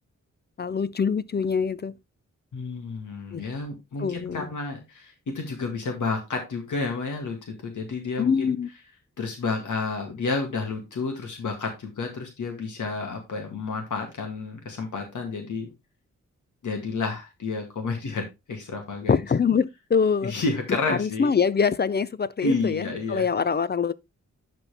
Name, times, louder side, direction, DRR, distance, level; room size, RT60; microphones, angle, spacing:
voice 1, 0.6-1.9 3.3-3.4 4.0-4.5 8.2-8.7 19.1-20.3 20.9-23.9, left 6 dB, 35° left, 0.4 m, -24 dB
voice 2, 2.5-8.5 9.2-15.7 16.6-19.2 20.2-21.3 22.4-23.3, left 3 dB, 90° left, 2.0 m, -30 dB
11.0 x 4.3 x 3.4 m
wide cardioid pair, 95°, 30 cm